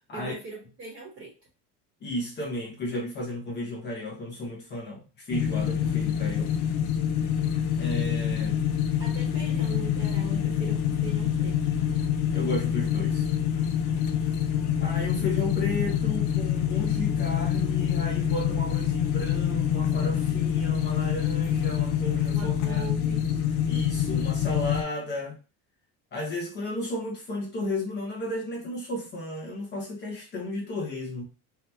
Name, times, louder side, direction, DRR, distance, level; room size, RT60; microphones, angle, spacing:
voice 1, 0.1-1.3 9.0-11.6 22.3-23.4, right 2 dB, 35° right, -3 dB, 0.8 m, -40 dB
voice 2, 2.0-6.5 7.8-8.6 12.3-13.3 14.8-22.9 23.7-25.3 26.1-31.2, left 1 dB, 30° left, -2 dB, 0.6 m, -33 dB
sound 1, 5.3-24.8, left 9 dB, 75° left, 0.6 m, -26 dB
2.8 x 2.0 x 3.2 m, 0.34 s
cardioid pair, 160°, 37 cm